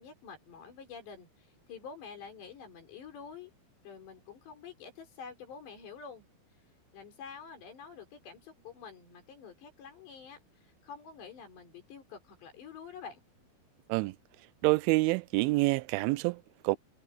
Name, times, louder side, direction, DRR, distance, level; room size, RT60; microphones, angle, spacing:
voice 1, 0.0-3.5 3.8-6.3 6.9-13.2, left 6 dB, 65° left, 6.8 m, -48 dB
voice 2, 14.6-16.8, right 22 dB, 85° right, 2.9 m, -27 dB
omnidirectional pair, 5.4 m